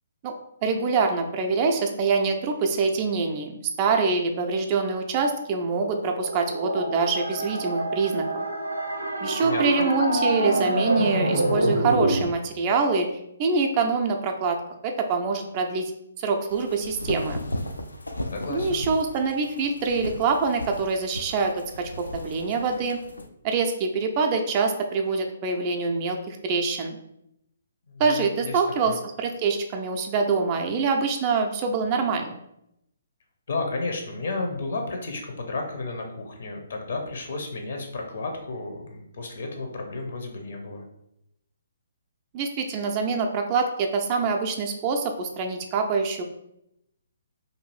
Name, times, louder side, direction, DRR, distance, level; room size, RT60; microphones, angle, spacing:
voice 1, 0.6-8.2 9.2-13.1 13.4-14.6 14.8-15.9 16.2-17.4 18.5-21.5 21.8-23.0 23.4-27.0 28.0-32.3 42.3-46.2, right 4 dB, 30° right, 4 dB, 0.4 m, -25 dB
sound 1, 5.7-12.3, right 1 dB, 90° right, 0.5 m, -26 dB
voice 2, 9.4-9.8 18.3-18.8 27.9-28.2 28.4-28.9 33.5-40.8, left 3 dB, 60° left, 3 dB, 0.7 m, -32 dB
sound 2, 16.5-23.3, left 1 dB, 85° left, 0.3 m, -36 dB
2.6 x 2.4 x 3.1 m, 0.79 s
figure-of-eight pair, 130°, 0 cm